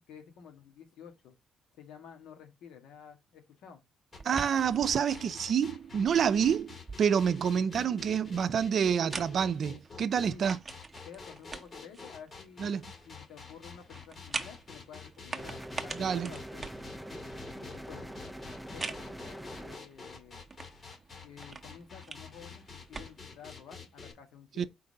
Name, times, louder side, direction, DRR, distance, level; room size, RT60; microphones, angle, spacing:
voice 1, 0.0-1.3 1.8-3.8 10.3-10.5 11.0-16.8 17.5-18.1 18.7-20.5 21.2-24.7, left 7 dB, 90° left, 1.7 m, -51 dB
sound 1, 4.1-24.1, left 5 dB, 45° left, 2.0 m, -48 dB
sound 2, 4.1-23.6, right 4 dB, 30° right, 0.9 m, -46 dB
voice 2, 4.2-10.6 12.6-12.8 16.0-16.3 24.6-24.7, right 7 dB, 60° right, 0.5 m, -28 dB
sound 3, 15.4-19.8, equal, ahead, 0.6 m, -44 dB
4.7 x 3.9 x 5.4 m
cardioid pair, 90°, 0 cm